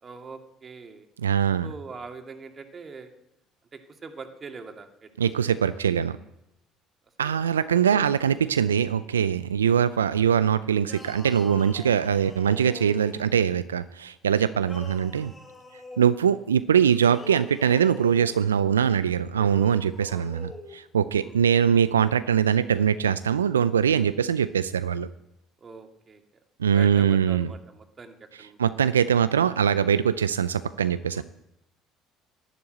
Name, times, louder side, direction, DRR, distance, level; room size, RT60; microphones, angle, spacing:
voice 1, 0.0-1.1 1.6-3.1 3.7-5.3 5.6-5.8 7.2-7.6 7.9-8.1 9.6-9.8 14.5-14.7 20.1-20.3 21.2-21.4 25.6-26.2 26.7-28.6 31.1-31.2, right 4 dB, 35° right, 5 dB, 2.4 m, -43 dB
voice 2, 1.2-1.7 5.2-6.2 7.2-15.3 16.0-25.1 26.6-27.5 28.6-31.2, right 8 dB, 90° right, 14 dB, 0.4 m, -22 dB
sound 1, 10.8-13.5 14.6-16.1 16.9-18.4 19.3-20.8, left 2 dB, 20° left, 5.6 m, -44 dB
12.5 x 11.5 x 8.0 m, 0.89 s
hypercardioid pair, 60°, 0 cm